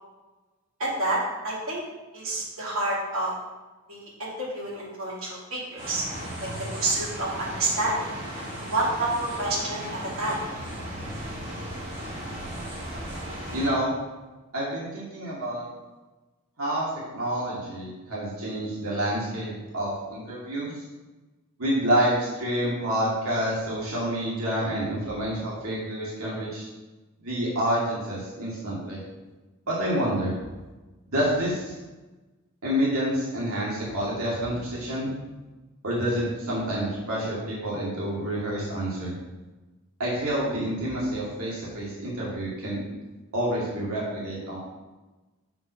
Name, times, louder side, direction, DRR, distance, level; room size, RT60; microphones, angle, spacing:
voice 1, 0.8-1.2 1.4-1.8 2.1-3.3 3.9-6.0 6.4-8.1 8.7-9.9 10.2-10.5, right 2 dB, 70° right, -5 dB, 2.5 m, -28 dB
sound 1, 5.8-13.7, equal, 30° right, 2.6 m, -36 dB
voice 2, 13.5-13.9 14.5-15.7 16.6-20.8 21.6-26.7 27.2-29.0 29.7-30.3 31.1-31.8 32.6-35.1 35.8-39.1 40.0-42.8 43.3-44.6, right 1 dB, 85° right, -7 dB, 2.3 m, -28 dB
6.1 x 5.8 x 5.7 m, 1.2 s
head